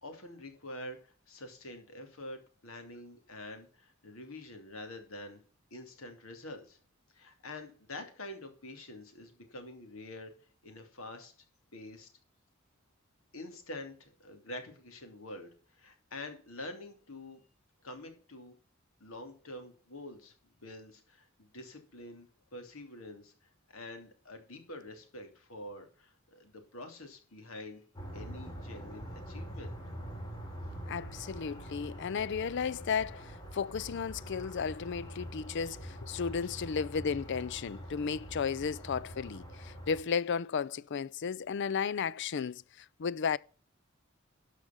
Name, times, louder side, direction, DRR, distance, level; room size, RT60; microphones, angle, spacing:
voice 1, 0.0-5.4 5.7-6.8 7.1-10.3 10.6-11.3 11.7-12.1 13.3-17.4 17.8-18.6 19.0-23.3 23.7-27.8 28.1-29.7, left 1 dB, 80° left, 2.9 m, -46 dB
sound 1, 27.9-40.0, equal, 20° left, 3.8 m, -44 dB
voice 2, 30.9-43.4, left 6 dB, 60° left, 0.5 m, -34 dB
12.5 x 5.1 x 7.2 m
head